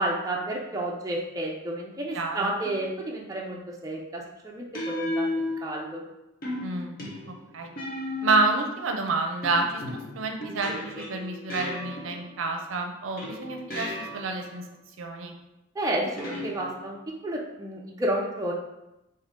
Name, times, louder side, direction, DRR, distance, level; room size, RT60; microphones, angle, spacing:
voice 1, 0.0-5.3 5.6-6.0 15.8-18.5, right 1 dB, 15° right, -2 dB, 0.5 m, -31 dB
voice 2, 2.1-2.5 6.6-7.0 7.3-7.7 8.2-14.7 15.0-15.3, right 3 dB, 75° right, 3 dB, 0.5 m, -29 dB
sound 1, 2.6-3.0 4.7-6.0 6.4-8.6 9.4-12.4 13.2-14.5 16.2-17.1, left 1 dB, 45° left, 0.7 m, -34 dB
3.7 x 2.6 x 3.6 m, 0.92 s
head